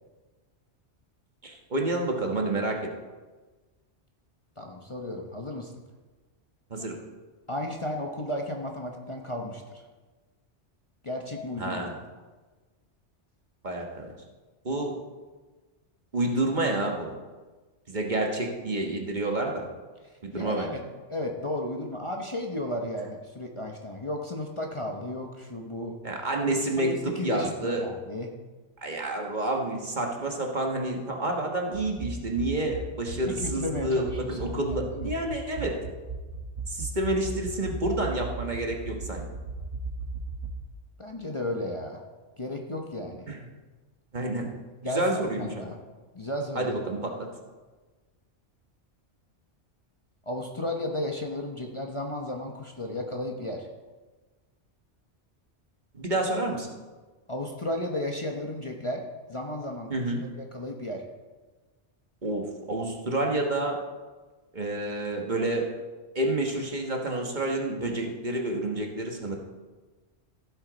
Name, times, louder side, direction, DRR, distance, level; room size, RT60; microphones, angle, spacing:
voice 1, 1.4-2.8 6.7-7.0 11.6-11.9 13.6-14.1 14.6-14.9 16.1-17.2 17.9-19.7 20.2-20.7 26.0-27.8 28.8-35.8 36.7-39.2 43.3-43.4 44.1-44.5 44.8-45.7 46.5-47.3 55.9-56.7 59.9-60.2 62.2-63.8 64.5-65.7 66.1-69.4, right 2 dB, 40° right, 1 dB, 1.4 m, -29 dB
voice 2, 4.6-5.7 7.5-9.8 11.0-11.8 20.3-20.8 21.1-26.0 26.4-28.3 33.2-34.5 34.9-35.1 41.0-42.0 42.4-43.3 44.8-45.8 46.1-46.8 50.3-53.7 57.3-59.0 59.3-61.0, left 1 dB, 30° left, 1 dB, 1.0 m, -34 dB
sound 1, 31.7-40.7, right 2 dB, 85° right, 1.4 m, -37 dB
15.5 x 8.0 x 4.0 m, 1.3 s
omnidirectional pair, 1.2 m